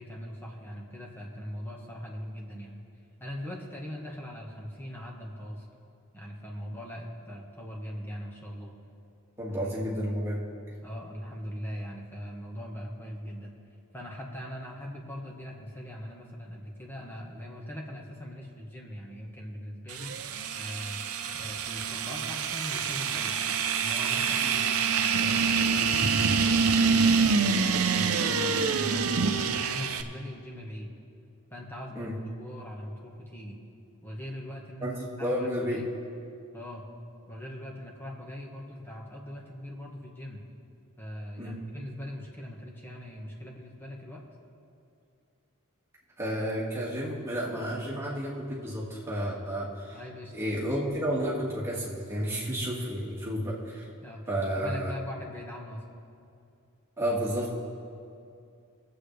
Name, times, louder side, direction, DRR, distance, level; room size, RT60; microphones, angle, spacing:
voice 1, 0.0-2.8 3.2-5.7 6.1-8.7 10.8-13.5 13.9-20.1 20.5-21.0 21.3-23.4 23.8-30.9 31.5-32.1 32.4-33.6 34.0-34.9 35.2-35.8 36.5-36.9 37.3-40.4 41.0-44.2 49.9-50.3 53.0-53.1 54.0-54.2 54.5-55.8, equal, 10° left, -2 dB, 1.5 m, -41 dB
voice 2, 9.4-10.4 24.4-24.5 31.9-32.2 34.8-35.8 41.4-41.5 46.2-50.0 50.3-53.9 54.3-54.9 57.0-57.5, equal, 10° right, -6 dB, 2.2 m, -31 dB
sound 1, 19.9-30.0, right 5 dB, 70° right, 0.7 m, -26 dB
22.0 x 8.1 x 3.4 m, 2.5 s
head